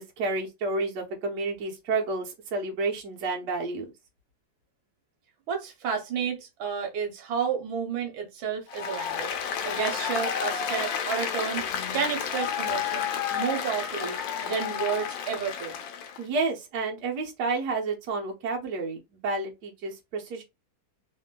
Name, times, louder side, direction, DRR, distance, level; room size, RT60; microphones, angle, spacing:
voice 1, 0.0-3.9 16.2-20.4, right 3 dB, 65° right, 1.4 m, -30 dB
voice 2, 5.5-9.3 9.6-11.6 11.9-15.8, right 7 dB, 85° right, 1.6 m, -31 dB
Applause, 8.7-16.2, left 8 dB, 75° left, 1.3 m, -31 dB
3.5 x 2.6 x 2.2 m
omnidirectional pair, 2.1 m